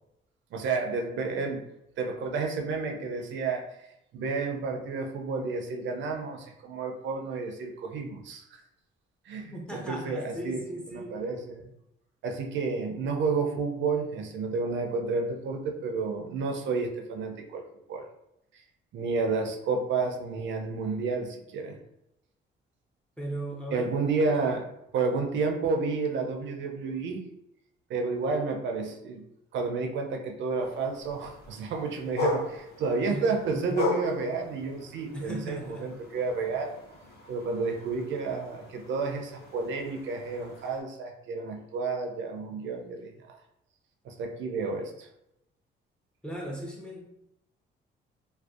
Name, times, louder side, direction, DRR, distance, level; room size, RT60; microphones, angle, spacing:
voice 1, 0.5-1.6 2.0-3.7 4.1-8.6 9.3-10.6 10.9-11.7 12.2-18.1 18.9-21.8 23.7-24.6 24.9-27.2 27.9-29.2 29.5-36.8 37.3-43.4 44.0-45.1, right 4 dB, 70° right, 3 dB, 0.4 m, -31 dB
voice 2, 9.5-11.2 23.2-24.6 33.1-33.8 35.1-35.9 46.2-47.0, right 1 dB, 5° left, -1 dB, 0.6 m, -38 dB
sound 1, 30.6-40.8, left 2 dB, 55° left, 0.6 m, -38 dB
2.5 x 2.2 x 2.3 m, 0.82 s
cardioid pair, 90°, 20 cm